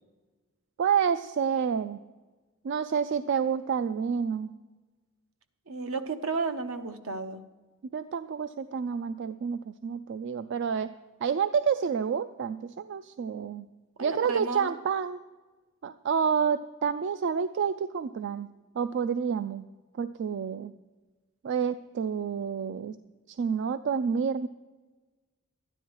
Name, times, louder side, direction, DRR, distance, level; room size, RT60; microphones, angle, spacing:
voice 1, 0.8-2.0 2.6-4.5 7.9-10.9 11.2-13.7 14.0-15.2 15.8-18.5 18.8-19.6 20.0-20.7 21.4-23.0 23.3-24.5, right 6 dB, 55° right, 12 dB, 0.3 m, -29 dB
voice 2, 5.7-7.4 14.0-14.7, right 4 dB, 75° right, 9 dB, 0.8 m, -32 dB
13.0 x 9.9 x 4.6 m, 1.3 s
head